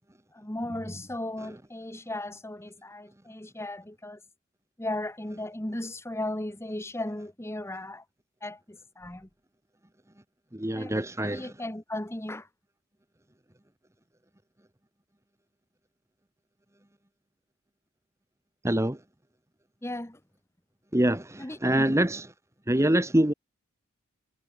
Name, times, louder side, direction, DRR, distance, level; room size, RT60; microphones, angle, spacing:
voice 1, 0.3-4.2 4.8-8.0 8.4-9.3 10.7-10.9 11.2-12.5 19.8-20.2 21.4-22.0, left 1 dB, 10° left, 1.4 m, -36 dB
voice 2, 10.5-11.5 18.6-19.0 20.9-22.3 22.7-23.3, right 1 dB, 15° right, 1.2 m, -25 dB
head